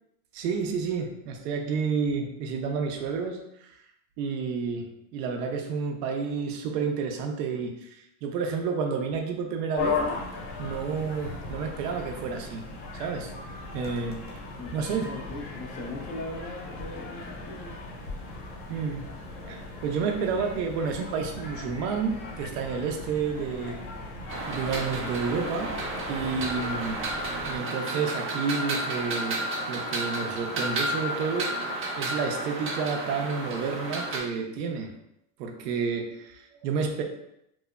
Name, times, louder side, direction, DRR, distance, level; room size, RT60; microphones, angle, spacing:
voice 1, 0.3-3.7 4.2-10.0 10.6-12.6 12.9-13.3 13.7-14.4 14.7-15.1 18.7-19.0 19.5-23.8 24.5-25.7 26.1-27.1 27.4-29.4 29.7-31.6 32.0-34.9 35.4-37.0, right 5 dB, 80° right, 2 dB, 0.6 m, -30 dB
sound 1, 9.8-27.6, left 3 dB, 60° left, 0.8 m, -37 dB
voice 2, 14.6-17.7, left 2 dB, 20° left, 1 dB, 0.3 m, -39 dB
sound 2, 24.3-34.2, right 1 dB, 25° right, 0.6 m, -32 dB
3.0 x 2.0 x 2.3 m, 0.80 s
supercardioid pair, 100°, 48 cm